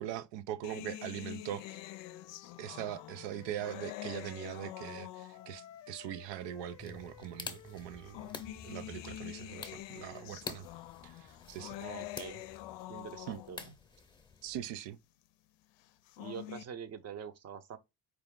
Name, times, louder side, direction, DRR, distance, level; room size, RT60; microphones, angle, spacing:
voice 1, 0.0-1.8 2.6-8.3 8.6-10.7 11.0-11.8 13.3-13.4 14.4-15.0, right 12 dB, 90° right, 0.6 m, -41 dB
sound 1, 0.6-5.7 6.6-6.7 7.8-13.7 15.9-16.6, left 14 dB, 90° left, 0.5 m, -46 dB
Wind instrument woodwind instrument, 1.3-5.0 5.3-9.3, left 12 dB, 45° left, 0.6 m, -56 dB
sound 2, 6.8-14.6, left 4 dB, 10° left, 0.7 m, -49 dB
voice 2, 11.8-12.4 12.9-13.7 16.2-17.8, right 7 dB, 40° right, 0.7 m, -45 dB
4.8 x 2.4 x 3.6 m
cardioid pair, 125°, 41 cm